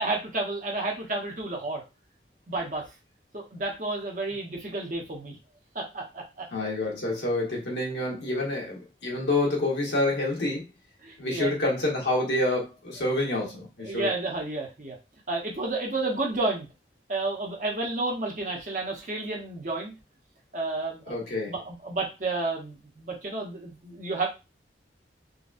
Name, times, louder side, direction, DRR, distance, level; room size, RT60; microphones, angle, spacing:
voice 1, 0.0-1.8 2.5-2.8 3.3-5.4 5.7-6.4 11.0-11.5 13.8-15.0 15.3-16.7 17.1-19.9 20.5-21.1 21.5-24.3, right 2 dB, 45° right, 0 dB, 0.9 m, -31 dB
voice 2, 6.5-10.6 11.2-14.1 21.1-21.5, left 2 dB, 80° left, -2 dB, 1.3 m, -28 dB
3.9 x 2.3 x 2.5 m, 0.27 s
head